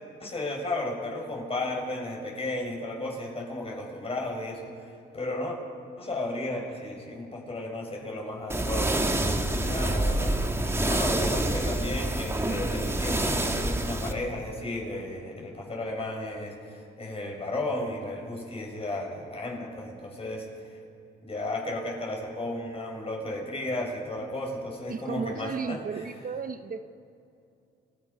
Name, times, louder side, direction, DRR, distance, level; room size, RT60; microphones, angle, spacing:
voice 1, 0.2-4.9 5.1-5.6 6.0-9.1 9.5-10.4 10.6-20.5 21.2-26.1, left 1 dB, 30° left, -1 dB, 6.4 m, -34 dB
sound 1, 8.5-14.1, right 1 dB, 15° right, 1.8 m, -27 dB
voice 2, 24.9-26.8, right 6 dB, 45° right, 8 dB, 0.9 m, -34 dB
30.0 x 17.0 x 5.5 m, 2.7 s
cardioid pair, 90°, 20 cm